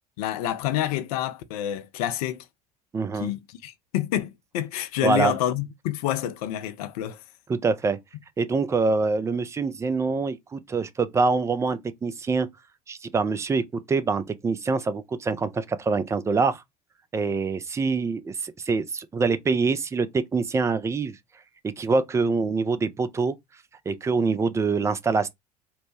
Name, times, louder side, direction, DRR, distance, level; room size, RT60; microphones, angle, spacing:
voice 1, 0.2-2.5 3.2-7.2, left 12 dB, 65° left, 0.5 m, -28 dB
voice 2, 2.9-3.3 5.0-5.3 7.5-8.0 8.4-12.5 12.9-16.6 17.1-21.2 21.6-23.4 23.9-25.3, right 4 dB, 15° right, 0.3 m, -25 dB
2.7 x 2.1 x 3.1 m
figure-of-eight pair, 65°, 21 cm